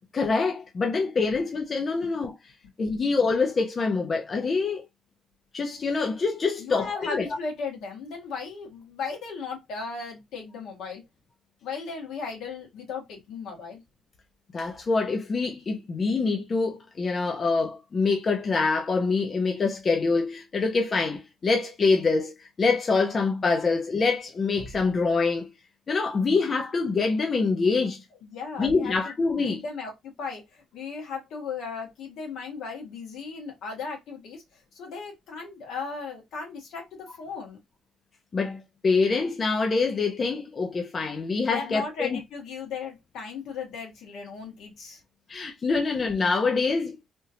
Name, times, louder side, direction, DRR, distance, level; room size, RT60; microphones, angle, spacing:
voice 1, 0.1-2.3 2.8-4.8 5.5-7.2 14.5-25.5 25.9-28.0 28.6-29.6 38.3-42.2 45.3-47.0, left 4 dB, 40° left, 0.8 m, -25 dB
voice 2, 6.6-11.0 11.6-13.8 28.2-29.1 29.4-37.6 41.4-45.0, left 5 dB, 80° left, 1.8 m, -36 dB
3.6 x 2.8 x 2.7 m
cardioid pair, 90°, 0 cm